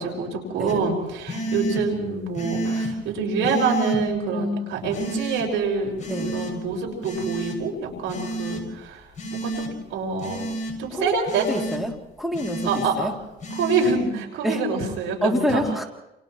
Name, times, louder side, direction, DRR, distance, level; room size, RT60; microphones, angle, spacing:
voice 1, 0.0-9.0 9.3-10.4 10.8-11.5 12.6-13.1 13.6-15.6, right 4 dB, 90° right, 0 dB, 5.5 m, -26 dB
sound 1, 0.7-0.8 1.3-1.8 2.4-2.9 3.4-4.0 4.9-5.4 6.0-6.5 7.0-7.6 8.1-8.6 9.2-9.7 10.2-10.7 11.3-11.8 12.3-12.9 13.4-13.9, right 1 dB, 40° left, 6.8 m, -30 dB
voice 2, 4.3-4.7 6.1-6.3 10.9-11.1 11.5-13.1 14.4-14.6 15.2-15.8, equal, ahead, 2 dB, 3.0 m, -27 dB
29.5 x 28.5 x 3.2 m, 0.93 s
cardioid pair, 90°, 20 cm